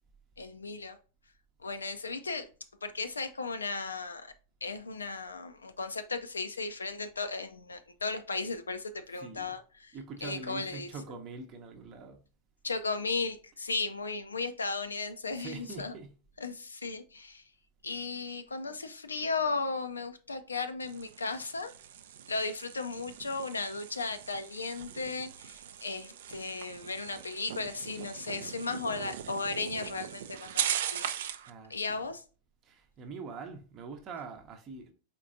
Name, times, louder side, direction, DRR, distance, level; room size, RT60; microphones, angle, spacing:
voice 1, 0.4-1.0 1.6-2.5 2.8-4.3 4.6-10.0 10.2-10.9 12.6-15.9 16.4-17.4 17.8-21.7 22.3-31.1 31.7-32.2, left 4 dB, 75° left, 0.4 m, -35 dB
voice 2, 9.2-9.6 9.9-12.2 15.3-16.1 31.2-32.0 32.6-34.9, right 4 dB, 30° right, 0.7 m, -44 dB
sound 1, 20.8-31.5, right 10 dB, 60° right, 0.4 m, -39 dB
4.4 x 4.0 x 2.6 m
figure-of-eight pair, 90°, 0 cm